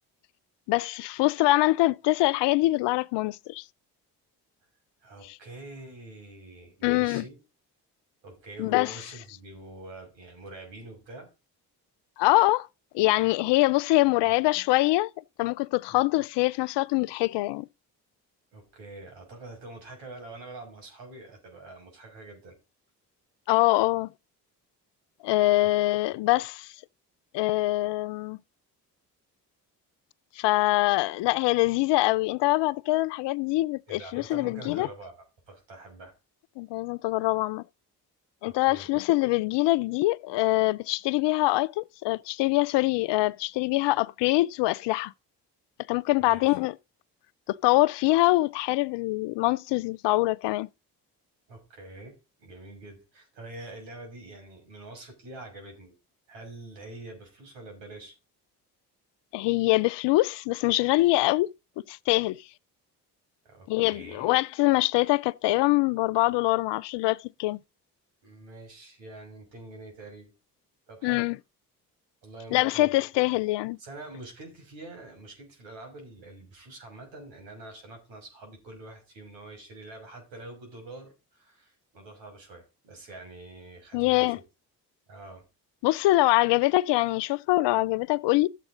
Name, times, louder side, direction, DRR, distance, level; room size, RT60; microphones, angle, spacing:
voice 1, 0.7-3.6 6.8-7.2 8.6-8.9 12.2-12.7 12.9-15.1 15.4-17.7 23.5-24.1 25.2-26.7 27.3-28.4 30.4-34.9 36.6-37.6 38.4-45.1 45.9-46.7 47.5-50.7 59.3-61.5 61.9-62.4 63.7-67.6 71.0-71.3 72.5-73.8 83.9-84.4 85.8-88.5, left 19 dB, 65° left, 0.6 m, -24 dB
voice 2, 5.0-7.4 8.2-11.3 14.2-14.4 15.9-16.0 18.5-22.6 33.9-35.1 35.5-36.1 38.4-38.9 46.2-46.6 51.5-56.0 56.3-58.1 63.4-64.3 68.2-70.3 70.9-71.3 72.2-73.0 73.8-84.4 85.1-85.5, right 2 dB, 75° right, 6.0 m, -45 dB
12.5 x 8.3 x 3.8 m
hypercardioid pair, 55°, 44 cm